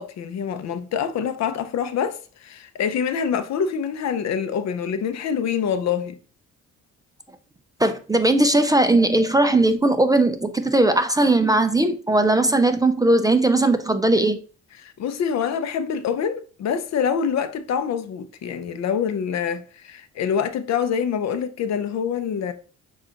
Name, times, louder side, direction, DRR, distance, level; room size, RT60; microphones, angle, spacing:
voice 1, 0.0-6.2 14.8-22.5, left 7 dB, 60° left, 0.6 m, -25 dB
voice 2, 7.8-14.4, right 2 dB, 10° right, 0.4 m, -18 dB
7.2 x 2.4 x 2.9 m
cardioid pair, 90°, 30 cm